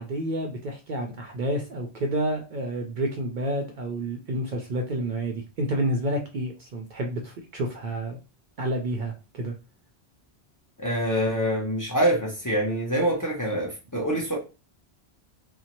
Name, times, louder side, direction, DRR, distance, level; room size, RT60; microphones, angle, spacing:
voice 1, 0.0-8.2 8.6-9.5, right 1 dB, 60° right, 0.6 m, -29 dB
voice 2, 10.8-14.4, equal, 20° left, 0.6 m, -25 dB
2.6 x 2.1 x 2.8 m
omnidirectional pair, 1.1 m